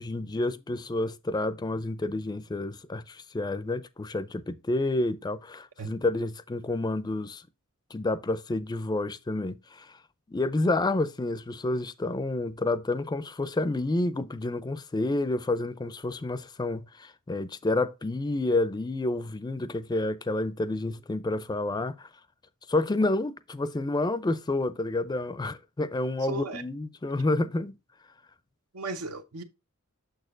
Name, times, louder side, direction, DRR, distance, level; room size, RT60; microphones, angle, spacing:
voice 1, 0.0-7.4 7.9-10.0 10.3-22.1 22.7-27.8, left 2 dB, 20° left, 0.4 m, -29 dB
voice 2, 26.3-26.6 28.7-29.4, right 3 dB, 90° right, 0.8 m, -35 dB
6.7 x 6.4 x 2.5 m
head